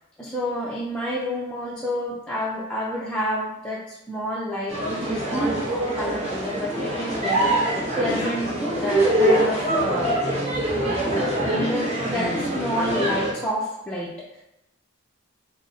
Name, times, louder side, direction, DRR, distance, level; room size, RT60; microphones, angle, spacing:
voice 1, 0.2-5.5 5.9-8.5 8.8-10.4 11.4-14.1, left 1 dB, 5° left, -8 dB, 0.4 m, -29 dB
sound 1, 4.7-13.3, right 1 dB, 30° right, 0.9 m, -24 dB
3.7 x 2.0 x 3.9 m, 0.92 s
head